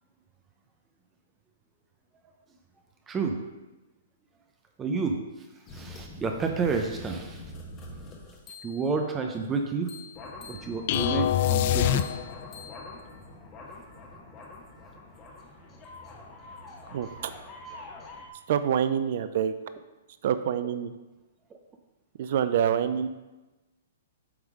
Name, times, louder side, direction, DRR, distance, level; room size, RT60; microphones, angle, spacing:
voice 1, 3.1-3.4 4.8-5.5 5.7-7.5 8.6-9.9 10.5-12.1 21.5-21.6, right 4 dB, 15° right, 4 dB, 0.6 m, -30 dB
sound 1, 5.7-9.0 9.9-18.3, left 2 dB, 25° left, 1.1 m, -44 dB
sound 2, 10.9-12.6, left 11 dB, 50° left, 0.3 m, -25 dB
voice 2, 18.5-19.5 20.2-20.9 22.2-23.1, right 8 dB, 55° right, 11 dB, 0.4 m, -26 dB
8.0 x 3.5 x 4.9 m, 1.1 s
hypercardioid pair, 140°, 0 cm